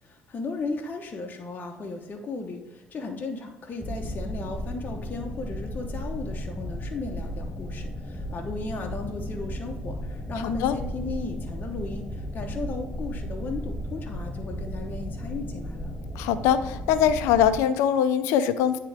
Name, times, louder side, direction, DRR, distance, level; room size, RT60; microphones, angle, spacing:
voice 1, 0.0-15.9, left 3 dB, 40° left, 1 dB, 0.9 m, -35 dB
sound 1, 3.8-17.6, equal, 10° left, 1.1 m, -35 dB
voice 2, 16.2-18.8, left 9 dB, 80° left, 12 dB, 0.5 m, -22 dB
9.5 x 3.7 x 3.4 m, 1.0 s
supercardioid pair, 70°, 5 cm